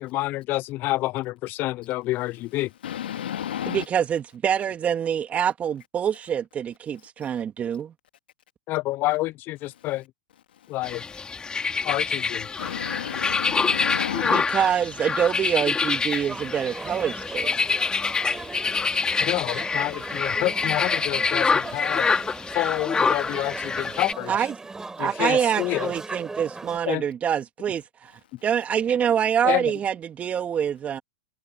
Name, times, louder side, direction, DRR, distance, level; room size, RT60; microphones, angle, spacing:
voice 1, 0.0-2.7 8.7-10.0 10.7-11.0 11.8-12.5 19.2-22.0 22.5-24.5 25.0-25.9 26.9-27.0 29.4-29.6, left 18 dB, 40° left, 0.4 m, -28 dB
voice 2, 2.8-3.9 9.7-9.9 10.6-10.8 12.6-14.4 18.1-18.5, left 10 dB, 80° left, 2.0 m, -32 dB
voice 3, 3.7-7.9 14.2-17.6 24.3-24.5 25.0-31.0, right 8 dB, 25° right, 2.5 m, -25 dB
sound 1, 10.8-24.1, left 5 dB, 15° left, 3.4 m, -26 dB
sound 2, 16.3-26.8, right 3 dB, 10° right, 7.0 m, -38 dB
hypercardioid pair, 110°, 5 cm